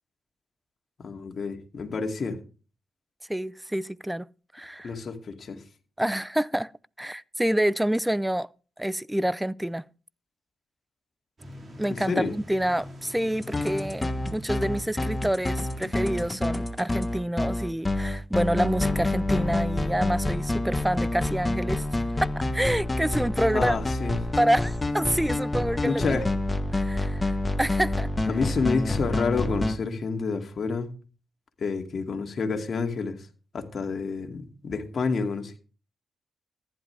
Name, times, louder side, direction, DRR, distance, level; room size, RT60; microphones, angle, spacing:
voice 1, 1.0-2.4 4.8-5.6 12.1-12.3 23.5-24.2 25.8-26.3 28.3-30.9 31.6-33.2 33.5-35.6, left 4 dB, 50° left, 2.4 m, -29 dB
voice 2, 3.3-4.3 4.5-4.9 6.0-6.7 7.0-8.5 8.8-9.8 11.8-21.9 22.2-23.8 24.4-26.2 26.7-28.1, right 1 dB, 5° right, 0.5 m, -27 dB
sound 1, 11.4-16.4, equal, 35° right, 3.9 m, -44 dB
sound 2, 13.4-29.8, left 2 dB, 20° left, 1.3 m, -28 dB
14.5 x 10.5 x 3.4 m
cardioid pair, 80°, 0 cm